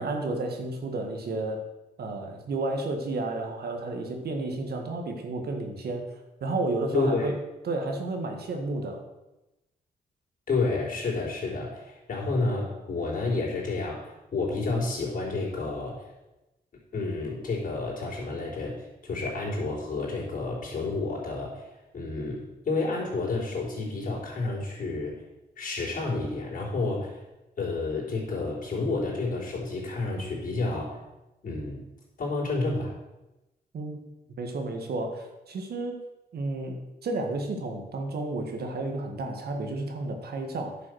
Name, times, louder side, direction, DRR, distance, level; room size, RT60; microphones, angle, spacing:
voice 1, 0.0-1.6 2.0-7.4 7.6-9.1 33.7-34.1 34.4-36.0 36.3-40.9, right 2 dB, 70° right, 4 dB, 1.7 m, -32 dB
voice 2, 6.9-7.3 10.5-16.1 16.9-21.7 21.9-25.2 25.6-27.2 27.6-31.0 31.4-31.8 32.2-32.9, left 3 dB, 55° left, -4 dB, 4.0 m, -30 dB
10.0 x 6.2 x 6.3 m, 0.99 s
cardioid pair, 110°, 17 cm